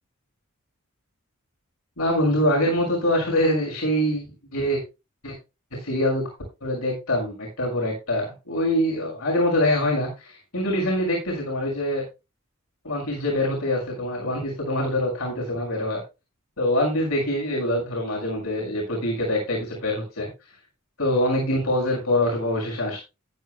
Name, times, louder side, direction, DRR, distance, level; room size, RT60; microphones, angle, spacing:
voice 1, 2.0-4.8 5.2-5.3 5.8-6.2 6.6-12.0 12.8-16.0 16.6-20.3 21.0-23.0, left 1 dB, 80° left, -2 dB, 5.9 m, -24 dB
14.5 x 11.5 x 2.2 m, 0.27 s
head